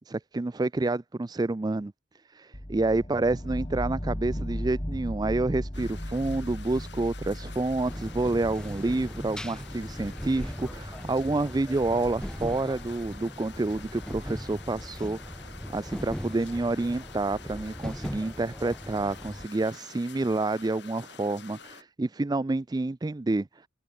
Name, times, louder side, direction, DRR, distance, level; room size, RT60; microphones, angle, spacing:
voice 1, 0.1-1.9 2.3-15.4 15.7-23.5, right 2 dB, 20° right, 0.4 m, -28 dB
sound 1, 2.5-12.3, equal, 25° left, 3.4 m, -37 dB
sound 2, 5.7-21.8, left 6 dB, 60° left, 2.9 m, -49 dB
sound 3, 7.8-19.5, equal, 5° left, 1.4 m, -39 dB
head